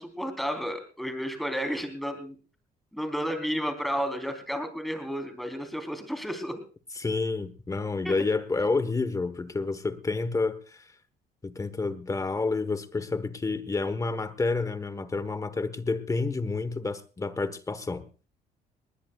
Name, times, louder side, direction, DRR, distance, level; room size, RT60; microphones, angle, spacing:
voice 1, 0.0-2.4 2.9-6.6 8.0-8.1, equal, ahead, 3.6 m, -32 dB
voice 2, 7.0-10.9 11.4-18.0, left 3 dB, 20° left, 1.2 m, -29 dB
20.0 x 20.0 x 2.4 m
cardioid pair, 110°, 17 cm